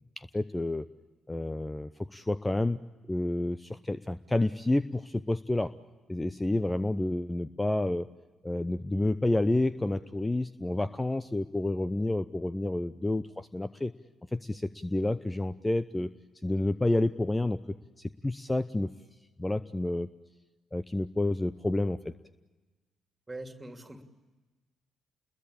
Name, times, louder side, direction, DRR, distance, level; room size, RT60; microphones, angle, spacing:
voice 1, 0.2-0.9 1.3-5.7 6.1-8.1 8.4-13.9 14.3-16.1 16.4-17.6 18.0-18.9 19.4-20.1 20.7-22.1, left 2 dB, 15° left, 15 dB, 0.8 m, -29 dB
voice 2, 23.3-24.0, right 2 dB, 20° right, 6 dB, 2.8 m, -42 dB
29.5 x 21.5 x 8.6 m, 1.2 s
figure-of-eight pair, 40°, 0 cm